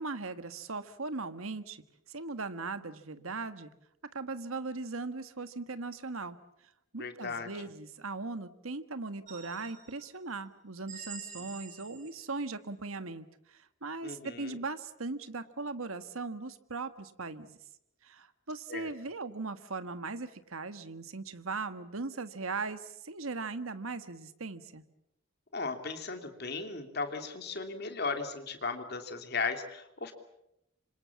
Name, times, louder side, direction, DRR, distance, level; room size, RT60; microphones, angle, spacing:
voice 1, 0.0-1.8 2.1-3.7 4.1-6.4 6.9-17.6 18.0-24.8, right 3 dB, 85° right, 11 dB, 1.6 m, -39 dB
voice 2, 7.0-7.5 14.0-14.5 18.7-18.9 25.5-30.1, left 4 dB, 50° left, 6 dB, 3.0 m, -36 dB
sound 1, 9.3-10.1 10.9-12.3, right 6 dB, 35° right, 5.6 m, -46 dB
27.0 x 26.0 x 7.3 m, 0.83 s
head